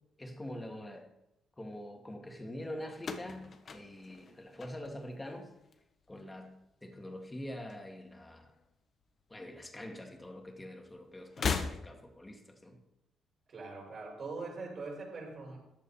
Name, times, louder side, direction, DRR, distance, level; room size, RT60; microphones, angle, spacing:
voice 1, 0.2-1.1 1.6-5.5 6.1-6.5 6.8-8.5 9.3-12.8, left 1 dB, 15° left, 2 dB, 2.5 m, -45 dB
sound 1, 3.0-5.3 5.6-6.2 7.3-8.3 8.5-8.6 9.8-9.9 11.3-12.3, left 5 dB, 45° left, 1.2 m, -38 dB
voice 2, 13.5-15.6, right 3 dB, 45° right, -4 dB, 6.1 m, -42 dB
14.0 x 10.5 x 4.4 m, 0.87 s
cardioid pair, 90°, 0 cm